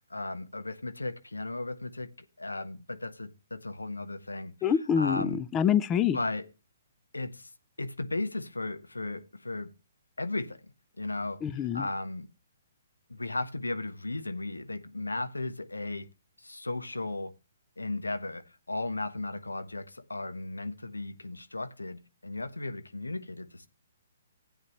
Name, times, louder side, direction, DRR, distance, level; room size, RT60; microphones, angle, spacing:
voice 1, 0.1-2.1 2.4-5.4 6.1-6.5 7.1-7.5 7.8-9.7 10.2-10.6 11.0-11.4 11.7-12.3 13.1-16.1 16.4-17.3 17.8-23.7, left 2 dB, 80° left, 0.9 m, -35 dB
voice 2, 4.6-6.2 11.4-11.9, left 8 dB, 20° left, 0.4 m, -26 dB
12.0 x 8.8 x 3.0 m
figure-of-eight pair, 125°, 0 cm